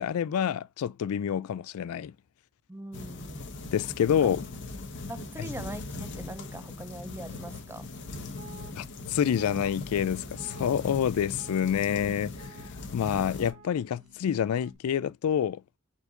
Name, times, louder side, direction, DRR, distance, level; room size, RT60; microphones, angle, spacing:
voice 1, 0.0-2.1 3.7-4.4 8.8-12.3 12.9-15.6, left 8 dB, 75° left, 0.3 m, -27 dB
voice 2, 2.7-3.5 4.1-4.3 5.1-7.9, right 2 dB, 10° right, 0.4 m, -42 dB
sound 1, 2.9-13.5, left 3 dB, 55° left, 1.2 m, -40 dB
sound 2, 7.1-14.8, right 3 dB, 80° right, 1.5 m, -53 dB
4.5 x 4.3 x 2.5 m
head